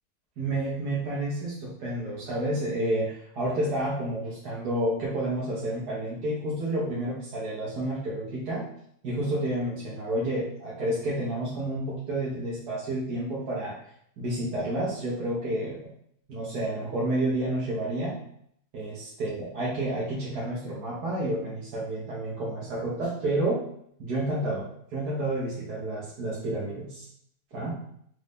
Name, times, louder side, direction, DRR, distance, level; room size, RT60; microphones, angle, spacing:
voice 1, 0.4-8.7 9.0-13.7 14.2-15.9 16.3-18.2 18.7-23.6 24.0-27.1 27.5-27.7, right 1 dB, 75° right, -7 dB, 1.6 m, -30 dB
4.3 x 2.6 x 3.5 m, 0.68 s
omnidirectional pair, 1.7 m